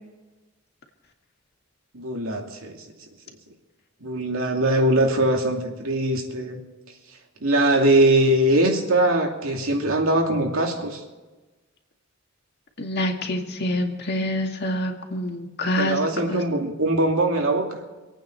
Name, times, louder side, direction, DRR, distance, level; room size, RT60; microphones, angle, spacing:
voice 1, 1.9-2.8 4.0-6.6 7.4-11.0 15.8-17.7, right 1 dB, 90° right, 1 dB, 2.5 m, -21 dB
voice 2, 12.8-16.0 16.3-16.4, left 1 dB, 55° left, 2 dB, 2.1 m, -26 dB
26.5 x 9.1 x 4.5 m, 1.2 s
head